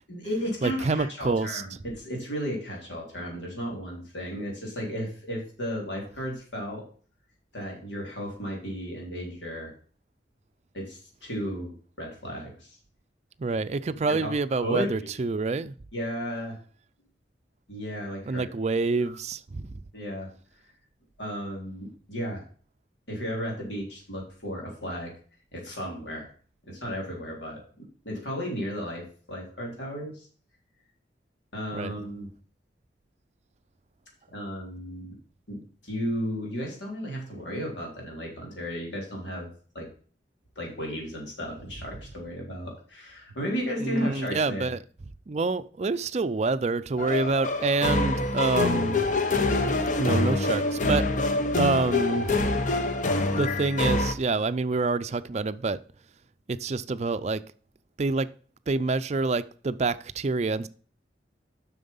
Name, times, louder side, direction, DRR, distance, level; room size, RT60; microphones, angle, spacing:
voice 1, 0.1-6.8 7.5-9.7 10.7-12.8 14.1-15.3 15.9-16.6 17.7-18.5 19.0-19.2 19.9-20.3 21.2-22.4 23.1-25.1 25.5-26.3 26.6-30.3 31.5-32.3 34.3-35.2 35.5-39.5 39.7-39.9 40.6-44.7, equal, 90° left, 3.5 m, -34 dB
voice 2, 0.6-1.6 13.4-15.7 18.3-19.8 31.7-31.9 43.8-44.8 45.3-49.2 50.0-52.5 53.4-55.8 56.5-57.4 58.0-58.3 58.7-60.7, right 3 dB, 40° right, 0.4 m, -27 dB
sound 1, 47.0-54.1, left 2 dB, 45° left, 0.8 m, -25 dB
7.4 x 6.2 x 5.5 m
head